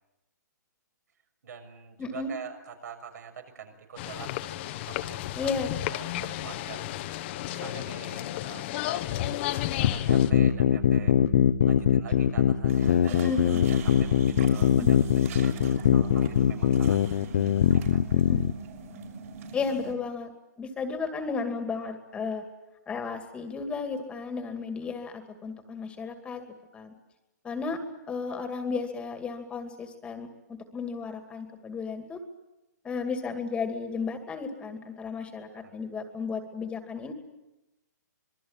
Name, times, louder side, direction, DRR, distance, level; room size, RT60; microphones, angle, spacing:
voice 1, 1.4-5.2 5.6-11.1 11.6-17.0 17.6-18.1 24.8-24.9 35.5-35.7, right 7 dB, 65° right, 5 dB, 6.5 m, -45 dB
voice 2, 2.0-2.3 5.4-5.7 13.1-13.6 14.8-14.9 18.3-18.4 19.5-20.3 20.6-22.4 22.9-26.9 27.4-27.8 28.1-32.2 32.8-37.1, left 4 dB, 10° left, 6 dB, 2.4 m, -34 dB
sound 1, 4.0-10.3, left 14 dB, 35° left, 1.3 m, -33 dB
sound 2, 9.8-18.5, left 9 dB, 60° left, 1.1 m, -22 dB
dog drinking Water, 12.7-19.9, right 4 dB, 50° right, 6.1 m, -41 dB
26.5 x 22.0 x 8.9 m, 0.99 s
hypercardioid pair, 150°, 10 cm